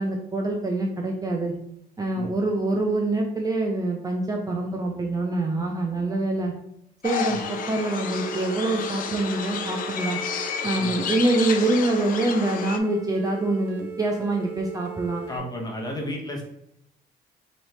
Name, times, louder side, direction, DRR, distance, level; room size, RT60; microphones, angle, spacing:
voice 1, 0.0-1.5 2.0-6.5 7.0-10.2 10.6-15.2, right 2 dB, 20° right, 1 dB, 0.5 m, -25 dB
sound 1, 7.0-12.8, left 7 dB, 55° left, 0.5 m, -31 dB
sound 2, 7.4-15.4, right 6 dB, 70° right, 0.8 m, -38 dB
voice 2, 15.3-16.4, left 1 dB, 25° left, 0 dB, 1.1 m, -32 dB
3.7 x 3.1 x 3.2 m, 0.77 s
cardioid pair, 110°, 17 cm